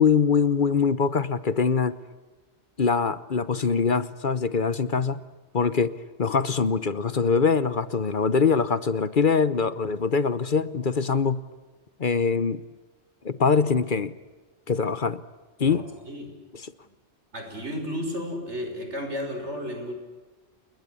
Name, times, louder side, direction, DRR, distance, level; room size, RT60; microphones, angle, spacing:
voice 1, 0.0-2.0 2.8-5.2 5.5-5.9 6.2-11.4 12.0-12.6 13.2-14.1 14.7-15.2 15.6-15.8 16.6-16.7, left 5 dB, 50° left, 16 dB, 1.1 m, -23 dB
voice 2, 15.6-16.3 17.3-19.9, equal, 85° right, 4 dB, 6.1 m, -33 dB
28.5 x 21.5 x 8.5 m, 1.2 s
omnidirectional pair, 1.1 m